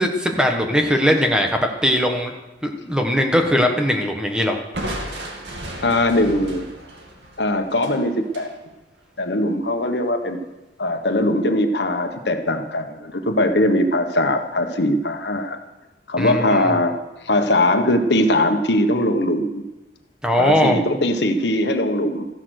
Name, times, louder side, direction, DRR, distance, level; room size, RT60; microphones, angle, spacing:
voice 1, 0.0-2.3 2.6-4.6 16.2-16.7 20.2-20.8, equal, 5° right, 3 dB, 1.4 m, -20 dB
Crushing, 4.7-8.5, right 1 dB, 75° right, 2.4 m, -33 dB
voice 2, 5.8-6.7 7.4-8.5 9.2-10.4 10.8-15.6 16.1-17.0 17.2-19.6 20.4-22.3, left 1 dB, 75° left, 6 dB, 1.4 m, -20 dB
14.5 x 11.0 x 6.5 m, 1.0 s
head